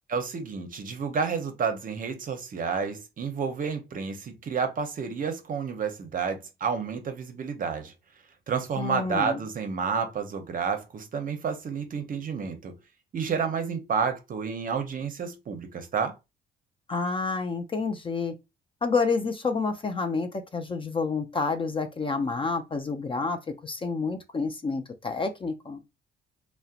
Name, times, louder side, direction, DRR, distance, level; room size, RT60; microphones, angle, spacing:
voice 1, 0.1-7.9 8.5-12.7 13.1-16.2, right 6 dB, 45° right, 0.6 m, -30 dB
voice 2, 8.8-9.4 16.9-18.3 18.8-25.8, left 4 dB, 25° left, 0.4 m, -29 dB
2.6 x 2.1 x 2.3 m
cardioid pair, 90°, 20 cm